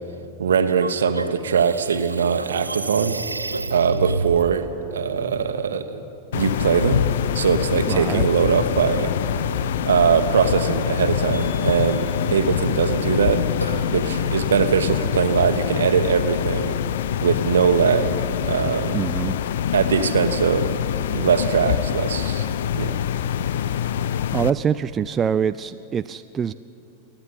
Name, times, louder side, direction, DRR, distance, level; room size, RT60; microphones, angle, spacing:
voice 1, 0.4-3.2 3.7-4.7 4.9-6.0 6.3-7.0 7.3-9.1 9.9-13.4 13.9-16.8 17.2-18.2 18.4-19.0 19.7-20.7 21.1-22.9, right 6 dB, 65° right, 9 dB, 1.2 m, -21 dB
sound 1, 0.7-4.4, right 3 dB, 80° right, 0.7 m, -30 dB
sound 2, 6.3-24.5, left 10 dB, 60° left, 0.5 m, -25 dB
voice 2, 7.9-8.3 18.9-19.4 24.3-26.5, right 7 dB, 25° right, 12 dB, 0.4 m, -24 dB
Burping eructation, 8.0-14.4, equal, 85° left, 2.7 m, -35 dB
26.0 x 10.5 x 9.9 m, 2.8 s
figure-of-eight pair, 90°, 0 cm